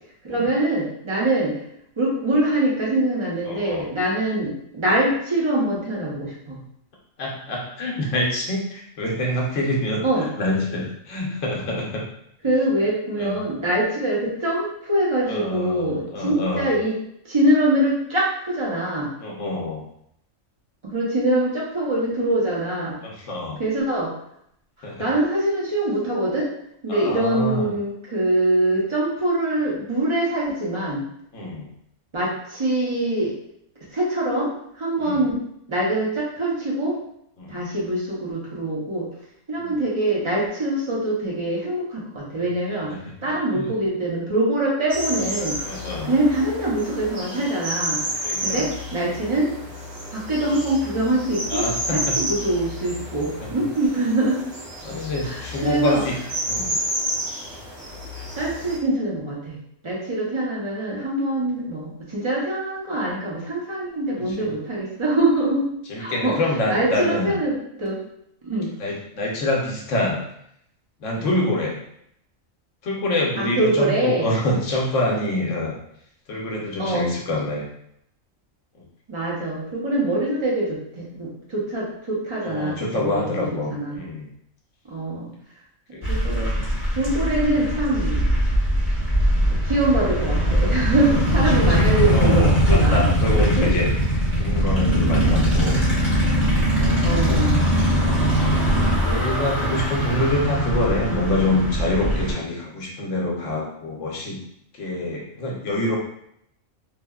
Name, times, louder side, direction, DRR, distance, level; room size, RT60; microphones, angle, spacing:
voice 1, 0.2-1.6 2.0-6.6 10.0-10.3 12.4-17.0 17.3-19.1 20.8-23.0 23.6-24.1 25.0-26.5 26.8-31.0 32.1-33.3 33.9-34.5 34.8-35.4 35.7-37.0 37.5-39.1 39.5-42.9 43.2-45.6 46.0-49.5 50.1-51.6 51.9-54.4 55.2-56.0 58.3-59.6 59.8-65.7 66.0-66.4 66.7-68.0 68.4-68.7 73.4-74.3 76.8-77.1 79.1-83.4 83.7-84.0 84.9-85.3 86.1-88.3 89.6-93.0 93.4-93.7 97.0-97.6, right 1 dB, 30° right, -5 dB, 0.6 m, -23 dB
voice 2, 3.5-3.9 7.2-12.0 13.2-13.4 15.3-16.7 19.2-19.9 23.0-23.6 24.8-25.1 26.9-27.7 31.3-31.7 35.0-35.2 37.4-37.7 39.6-39.8 42.9-43.7 45.6-46.1 48.2-48.7 51.5-52.2 53.4-53.5 54.8-56.2 56.5-56.8 64.4-64.5 65.9-67.4 68.8-70.2 71.0-71.8 72.8-75.8 76.3-77.7 82.4-84.3 85.9-86.0 91.5-93.9 94.4-96.1 96.8-97.5 98.9-104.4 104.7-106.0, left 1 dB, 70° left, -2 dB, 1.0 m, -26 dB
sound 1, 44.9-58.8, equal, 85° right, 1.5 m, -31 dB
sound 2, 86.0-102.3, equal, 10° right, 1.0 m, -21 dB
3.1 x 2.1 x 2.3 m, 0.72 s
omnidirectional pair, 1.4 m